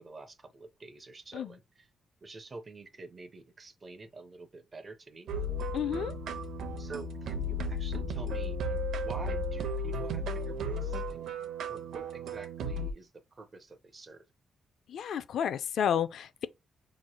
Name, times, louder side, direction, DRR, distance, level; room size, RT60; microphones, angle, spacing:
voice 1, 0.0-1.9 2.2-5.3 6.8-11.3 11.7-14.2, right 3 dB, 25° right, 0.6 m, -47 dB
sound 1, 5.3-12.9, equal, 85° right, 0.7 m, -34 dB
voice 2, 5.7-6.1 14.9-16.5, left 8 dB, 70° left, 0.4 m, -31 dB
5.5 x 3.1 x 2.2 m
wide cardioid pair, 155°, 0 cm